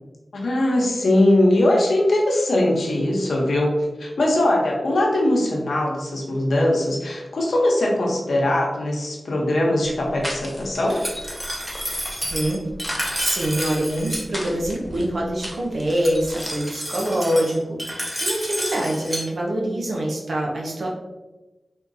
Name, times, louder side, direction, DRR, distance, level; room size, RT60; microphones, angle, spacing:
voice 1, 0.3-3.7 4.0-11.0, left 1 dB, 85° left, -2 dB, 0.8 m, -21 dB
sound 1, 9.8-16.5, equal, 20° left, 1.0 m, -37 dB
Glass, 10.9-14.2 15.9-19.2, equal, 15° right, 1.0 m, -30 dB
voice 2, 12.2-12.6 13.2-20.9, right 1 dB, 80° right, -2 dB, 0.8 m, -25 dB
3.5 x 2.8 x 2.6 m, 1.1 s
cardioid pair, 45°, 0 cm